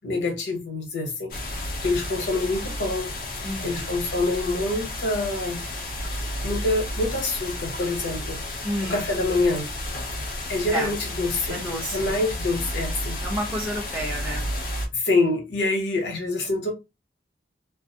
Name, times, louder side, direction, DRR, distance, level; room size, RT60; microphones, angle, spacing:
voice 1, 0.0-1.3 1.8-3.1 3.6-5.6 6.4-8.4 8.8-9.7 10.5-11.6 11.9-13.2 14.9-16.7, left 2 dB, 90° left, 0.9 m, -26 dB
sound 1, 1.3-14.9, left 1 dB, 55° left, 0.6 m, -32 dB
voice 2, 3.4-3.9 8.6-9.0 10.7-10.9 11.5-12.2 13.2-14.5, equal, 10° right, 1.0 m, -30 dB
2.4 x 2.0 x 2.6 m
head